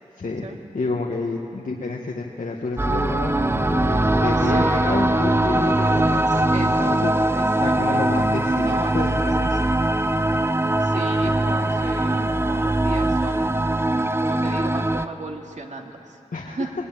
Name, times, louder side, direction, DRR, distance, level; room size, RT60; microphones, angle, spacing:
voice 1, 0.7-9.7 10.0-10.3 16.3-16.7, left 3 dB, 75° left, -1 dB, 1.5 m, -30 dB
sound 1, 2.8-15.1, right 1 dB, 15° right, 0.7 m, -21 dB
voice 2, 4.4-4.9 6.5-6.7 7.3-8.0 8.6-9.1 9.5-9.6 10.8-13.8 14.2-16.2 16.5-16.7, right 2 dB, 60° right, 2 dB, 2.2 m, -34 dB
21.0 x 19.5 x 9.0 m, 2.7 s
wide cardioid pair, 90°, 14 cm